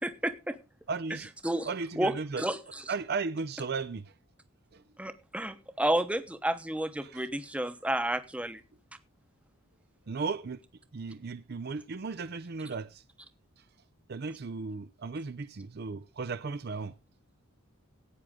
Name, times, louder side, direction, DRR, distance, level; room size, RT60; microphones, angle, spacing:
voice 1, 0.0-0.6 1.4-1.7 2.0-2.9 5.0-8.6, right 1 dB, 5° right, 0.9 m, -31 dB
voice 2, 0.9-1.3 1.6-2.5 2.9-4.1 4.7-4.8 7.0-7.3 10.1-10.6 10.9-13.0 14.1-16.9, right 4 dB, 45° right, 0.5 m, -35 dB
16.0 x 9.1 x 3.7 m
head